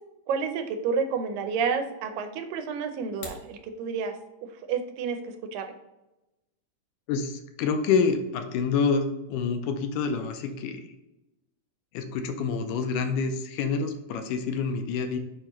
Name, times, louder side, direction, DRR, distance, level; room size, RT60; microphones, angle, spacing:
voice 1, 0.3-4.2 4.7-5.7, right 6 dB, 90° right, 7 dB, 2.4 m, -30 dB
sound 1, 3.0-3.5, left 3 dB, 60° left, 2.1 m, -42 dB
voice 2, 7.1-9.0 9.3-10.9 11.9-15.2, left 5 dB, 80° left, 6 dB, 2.1 m, -27 dB
6.7 x 5.3 x 3.0 m, 0.97 s
omnidirectional pair, 3.8 m